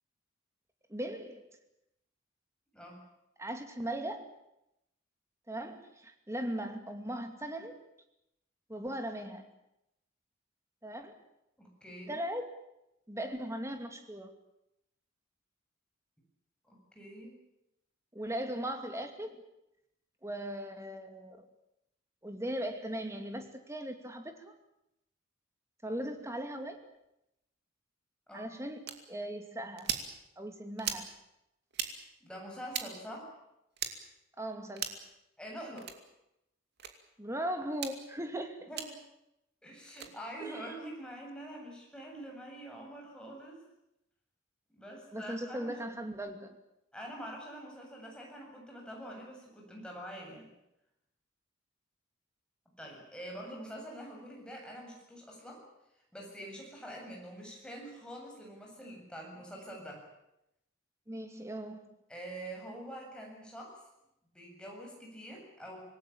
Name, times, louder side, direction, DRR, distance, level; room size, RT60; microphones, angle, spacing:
voice 1, 0.9-1.5 3.4-4.3 5.5-7.8 8.7-9.5 10.8-11.2 12.1-12.4 13.1-14.3 18.1-19.4 20.2-21.4 22.2-24.5 25.8-26.8 28.3-30.0 30.4-31.1 34.4-34.8 37.2-38.6 40.4-40.7 45.1-46.6 61.1-61.9, right 1 dB, 15° right, 6 dB, 2.6 m, -38 dB
voice 2, 2.7-3.0 11.6-12.2 16.6-17.3 28.3-28.5 32.2-33.3 35.4-35.9 38.7-39.0 39.6-43.6 44.7-45.9 46.9-50.5 52.8-55.6 56.1-60.0 62.1-63.8 64.3-65.8, right 1 dB, 5° left, -1 dB, 7.7 m, -45 dB
sound 1, 28.9-29.0 29.8-30.1 30.8-31.1 31.7-31.9 32.7-32.9 33.8-33.9 34.7-35.0 35.8-36.0 36.8-36.9 37.7-37.9 38.8-38.9 39.9-40.1, right 8 dB, 55° right, 2.5 m, -36 dB
26.5 x 19.0 x 8.8 m, 0.86 s
head